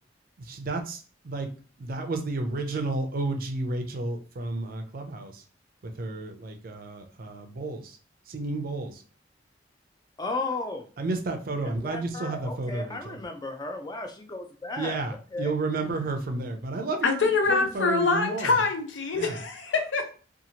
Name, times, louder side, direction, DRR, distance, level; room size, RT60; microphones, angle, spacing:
voice 1, 0.4-1.5 1.8-5.4 5.8-8.0 8.3-9.0 11.0-13.2 14.8-18.6 19.1-19.4, right 2 dB, 50° right, 5 dB, 0.4 m, -32 dB
voice 2, 10.2-10.9 11.6-15.0 15.3-15.5, left 3 dB, 20° left, 5 dB, 0.4 m, -34 dB
voice 3, 17.0-20.1, left 4 dB, 80° left, 5 dB, 0.6 m, -25 dB
2.8 x 2.4 x 2.7 m, 0.39 s
head